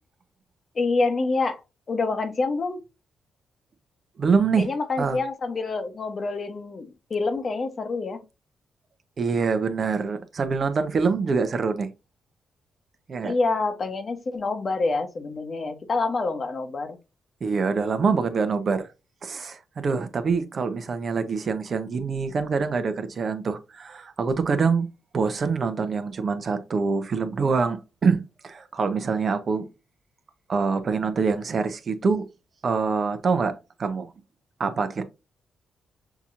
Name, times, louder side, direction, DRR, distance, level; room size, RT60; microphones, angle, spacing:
voice 1, 0.7-1.6 1.9-2.8 4.6-8.2 13.2-17.0, left 3 dB, 50° left, 1.0 m, -27 dB
voice 2, 4.2-4.7 5.0-5.2 9.2-11.9 13.1-13.4 17.4-18.9 19.2-24.9 25.1-29.6 30.5-32.2 32.6-34.1 34.6-35.0, right 5 dB, 55° right, 0.7 m, -25 dB
5.9 x 2.8 x 2.5 m
supercardioid pair, 55°, 0 cm